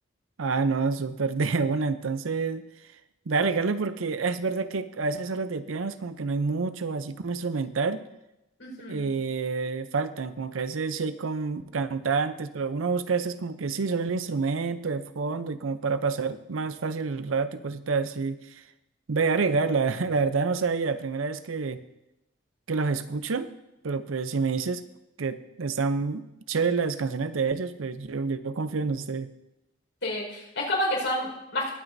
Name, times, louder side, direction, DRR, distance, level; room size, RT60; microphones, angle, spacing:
voice 1, 0.4-2.6 3.3-8.0 8.9-18.4 19.1-21.8 22.7-23.5 23.8-24.8 25.2-29.3, right 4 dB, 85° right, 12 dB, 0.6 m, -28 dB
voice 2, 8.6-9.1 30.0-31.7, left 1 dB, 70° left, -2 dB, 4.8 m, -29 dB
20.5 x 9.0 x 2.7 m, 0.91 s
head